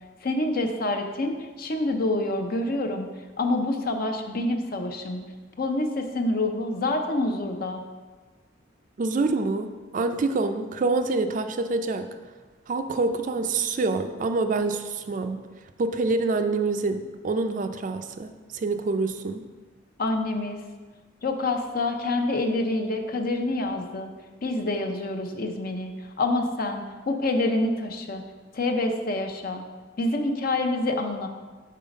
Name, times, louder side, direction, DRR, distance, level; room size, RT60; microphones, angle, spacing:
voice 1, 0.2-3.1 3.4-5.2 5.6-7.8 20.0-20.6 21.2-24.1 24.4-25.9 26.2-28.2 28.5-29.6 30.0-31.3, left 2 dB, 50° left, 5 dB, 0.6 m, -27 dB
voice 2, 9.0-12.1 12.7-15.4 15.8-19.4, right 3 dB, 45° right, 8 dB, 0.4 m, -26 dB
5.5 x 3.9 x 5.1 m, 1.3 s
head